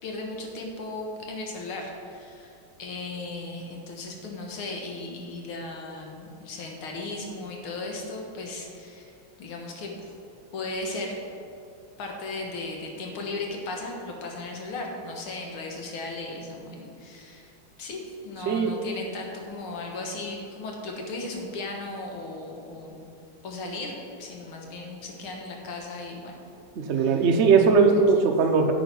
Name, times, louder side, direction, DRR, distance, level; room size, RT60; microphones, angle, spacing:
voice 1, 0.0-9.1 9.4-10.1 10.5-11.1 12.0-17.5 17.8-23.0 23.4-26.3 26.9-27.3 27.9-28.3, left 2 dB, 80° left, 1 dB, 2.1 m, -36 dB
voice 2, 26.8-28.7, right 5 dB, 80° right, 3 dB, 0.6 m, -19 dB
8.8 x 7.7 x 5.3 m, 2.5 s
omnidirectional pair, 2.3 m